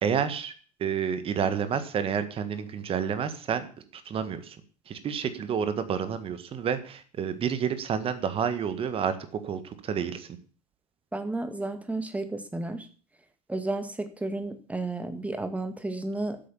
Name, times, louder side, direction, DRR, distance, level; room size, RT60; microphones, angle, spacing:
voice 1, 0.0-0.5 0.8-3.7 3.9-4.6 4.9-9.2 9.4-10.3, right 7 dB, 30° right, 12 dB, 1.7 m, -29 dB
voice 2, 11.1-12.9 13.5-16.4, right 2 dB, 5° right, 9 dB, 1.9 m, -32 dB
13.5 x 8.4 x 7.2 m, 0.41 s
figure-of-eight pair, 80°, 20 cm